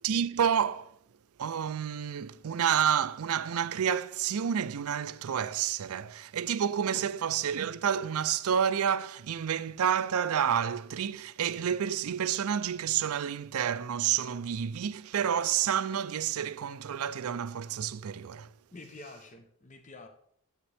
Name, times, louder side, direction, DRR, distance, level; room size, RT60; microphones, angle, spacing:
voice 1, 0.0-1.0 1.4-18.5, right 8 dB, 80° right, 0.4 m, -29 dB
voice 2, 18.7-20.1, left 2 dB, 30° left, 0.8 m, -47 dB
12.5 x 8.1 x 3.4 m
head